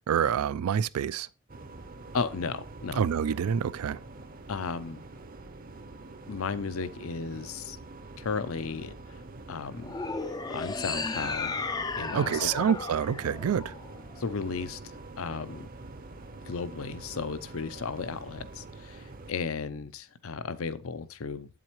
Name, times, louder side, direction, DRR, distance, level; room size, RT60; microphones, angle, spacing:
voice 1, 0.1-1.3 3.0-4.0 12.1-13.7, right 8 dB, 80° right, 0.4 m, -27 dB
sound 1, 1.5-19.3, right 2 dB, 40° right, 0.6 m, -46 dB
voice 2, 2.1-3.0 4.5-5.0 6.3-7.8 8.2-8.9 9.5-9.9 10.5-11.6 12.0-12.5 14.2-14.8 15.2-15.7 16.5-21.5, left 5 dB, 70° left, 0.6 m, -34 dB
sound 2, 9.8-14.2, left 4 dB, 15° left, 0.3 m, -34 dB
8.4 x 7.5 x 3.0 m
head